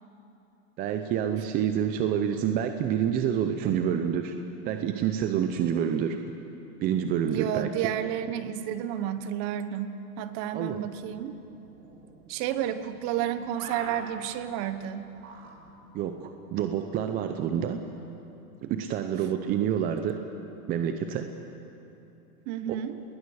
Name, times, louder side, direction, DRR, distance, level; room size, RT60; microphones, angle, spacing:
voice 1, 0.8-4.4 4.6-6.2 6.8-7.7 10.5-10.8 15.9-17.8 18.6-20.2 20.7-21.3 22.7-22.8, right 9 dB, 20° right, 7 dB, 0.6 m, -28 dB
voice 2, 7.3-11.4 12.3-15.1 22.5-23.0, right 10 dB, 35° right, 11 dB, 1.1 m, -31 dB
sound 1, 10.8-16.0, right 3 dB, 75° right, 4.3 m, -47 dB
28.0 x 20.0 x 6.4 m, 2.9 s
supercardioid pair, 145°, 46 cm